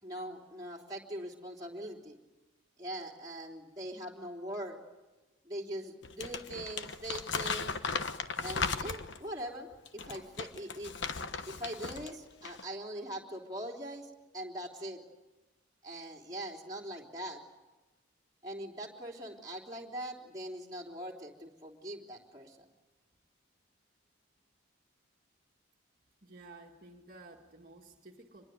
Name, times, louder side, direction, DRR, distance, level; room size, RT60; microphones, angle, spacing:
voice 1, 0.0-2.2 2.8-4.8 5.4-7.7 8.4-11.0 11.4-15.0 15.8-17.4 18.4-22.7, right 1 dB, 20° right, -2 dB, 3.4 m, -42 dB
Crumpling crinkling, 6.0-9.3 9.9-12.1 12.4-12.6, left 5 dB, 60° left, 1.1 m, -36 dB
voice 2, 26.2-28.5, right 2 dB, 45° right, -1 dB, 2.1 m, -53 dB
26.0 x 22.0 x 9.4 m, 1.1 s
head